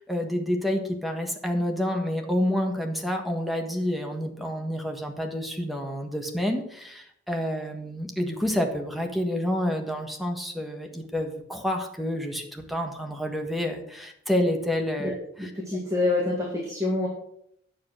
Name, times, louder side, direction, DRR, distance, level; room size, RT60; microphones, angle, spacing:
voice 1, 0.0-15.5, left 1 dB, ahead, 2 dB, 1.4 m, -29 dB
voice 2, 15.4-17.1, left 2 dB, 15° right, -3 dB, 1.9 m, -26 dB
9.5 x 6.9 x 6.4 m, 0.72 s
head